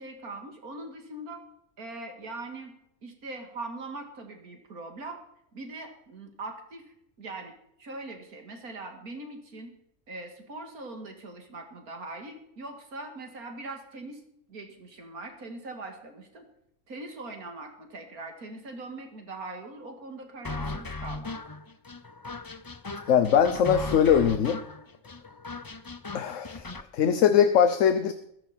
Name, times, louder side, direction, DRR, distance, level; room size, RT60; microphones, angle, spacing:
voice 1, 0.0-1.4 1.8-2.7 3.0-5.2 5.5-6.8 7.2-7.5 7.8-9.7 10.1-14.2 14.5-16.5 16.9-21.4, right 2 dB, 85° right, 4 dB, 2.7 m, -41 dB
sound 1, 20.4-26.9, left 3 dB, 30° left, 0.4 m, -37 dB
voice 2, 23.1-24.6 26.1-28.1, left 8 dB, 65° left, 10 dB, 1.1 m, -22 dB
21.0 x 11.5 x 4.4 m, 0.76 s
omnidirectional pair, 1.5 m